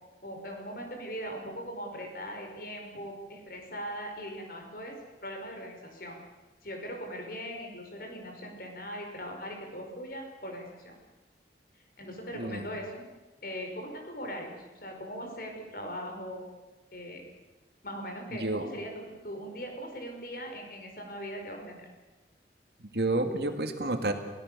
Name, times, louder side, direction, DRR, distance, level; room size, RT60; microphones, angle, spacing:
voice 1, 0.2-4.9 5.2-6.2 6.6-10.9 12.0-13.0 13.4-16.4 16.9-17.2 17.8-21.9, equal, 55° left, 2 dB, 5.4 m, -40 dB
voice 2, 12.3-12.7 18.3-18.6 22.9-24.1, right 2 dB, 65° right, 6 dB, 2.3 m, -30 dB
30.0 x 17.5 x 6.9 m, 1.1 s
head